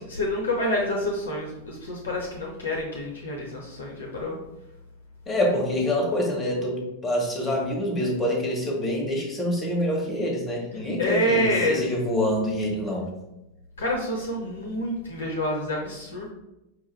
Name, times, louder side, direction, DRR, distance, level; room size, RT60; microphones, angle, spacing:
voice 1, 0.0-4.4 11.0-11.9 13.8-16.3, equal, 70° left, 0 dB, 0.7 m, -27 dB
voice 2, 5.3-13.0, left 1 dB, 20° left, -1 dB, 1.1 m, -26 dB
4.8 x 2.3 x 3.1 m, 0.92 s
figure-of-eight pair, 90°, 0 cm